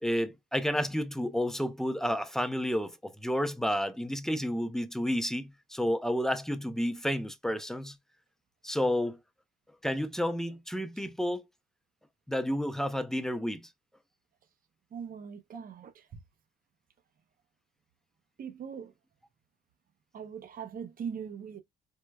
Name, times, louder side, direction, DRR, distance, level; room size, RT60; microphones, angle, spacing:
voice 1, 0.0-8.0 8.6-9.2 9.8-11.4 12.3-13.7, equal, ahead, 0.4 m, -31 dB
voice 2, 14.9-16.0 18.4-18.9 20.1-21.6, right 7 dB, 45° right, 0.7 m, -40 dB
4.5 x 2.2 x 2.2 m
cardioid pair, 90°, 20 cm